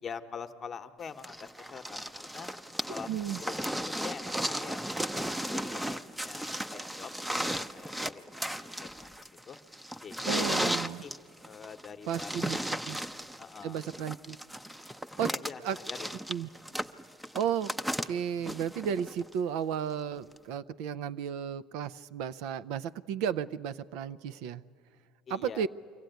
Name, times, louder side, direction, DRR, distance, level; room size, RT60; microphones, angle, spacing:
voice 1, 0.0-2.5 2.9-3.1 3.4-9.6 10.0-11.2 11.4-12.9 13.4-13.8 15.2-16.3 25.3-25.7, left 6 dB, 35° left, 8 dB, 0.9 m, -45 dB
sound 1, 1.2-19.3 20.4-20.5, equal, 5° right, 0.6 m, -35 dB
voice 2, 3.1-3.4 10.3-11.0 12.1-12.6 12.9-13.0 13.6-14.4 15.2-15.3 15.6-15.8 16.3-16.5 17.3-17.7 18.0-24.6 25.3-25.7, right 8 dB, 75° right, 14 dB, 0.5 m, -33 dB
24.0 x 15.5 x 9.2 m, 2.3 s
supercardioid pair, 95°, 0 cm